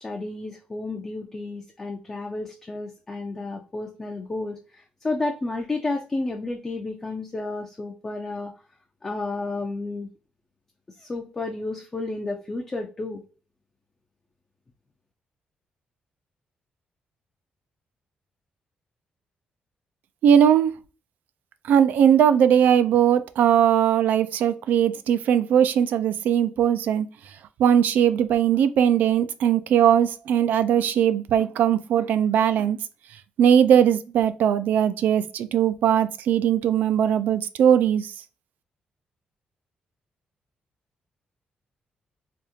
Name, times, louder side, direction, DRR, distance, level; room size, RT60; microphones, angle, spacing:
voice 1, 0.0-8.5 9.0-10.1 11.0-13.2, left 2 dB, 20° left, 0.4 m, -31 dB
voice 2, 20.2-20.7 21.7-27.1 27.6-32.8 33.4-38.1, right 9 dB, 75° right, 0.3 m, -19 dB
3.5 x 2.3 x 2.7 m
wide cardioid pair, 170°, 3 cm